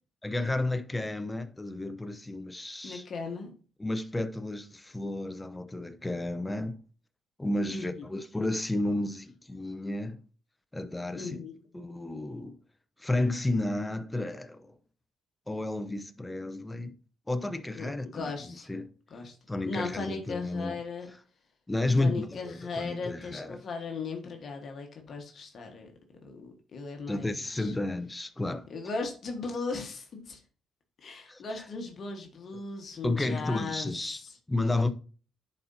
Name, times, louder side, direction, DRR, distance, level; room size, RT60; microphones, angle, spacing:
voice 1, 0.2-3.0 3.8-6.8 7.4-10.2 10.7-11.4 11.7-12.6 13.0-14.7 15.5-17.0 17.3-18.9 19.5-20.8 21.7-23.6 27.1-28.7 31.3-31.4 33.0-34.2 34.5-34.9, left 2 dB, 10° left, 0.6 m, -32 dB
voice 2, 2.8-3.5 7.7-8.0 11.1-11.6 17.8-18.7 19.1-19.4 19.6-21.1 22.0-25.9 26.2-27.8 28.7-30.4 31.0-34.4, left 4 dB, 55° left, 1.3 m, -37 dB
10.5 x 4.3 x 2.7 m
cardioid pair, 90°, 0 cm